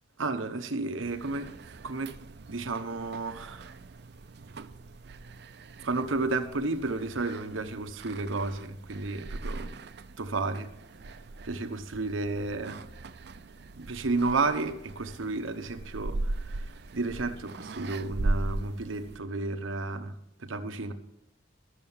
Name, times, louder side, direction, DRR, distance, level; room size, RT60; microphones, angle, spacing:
voice 1, 0.2-1.5 1.8-2.1 2.5-3.7 5.8-9.8 10.2-10.7 11.4-12.8 13.7-20.9, right 3 dB, 85° right, 7 dB, 1.0 m, -32 dB
sound 1, 1.0-19.2, right 2 dB, 55° right, 0.5 m, -39 dB
12.5 x 6.8 x 7.2 m, 0.83 s
head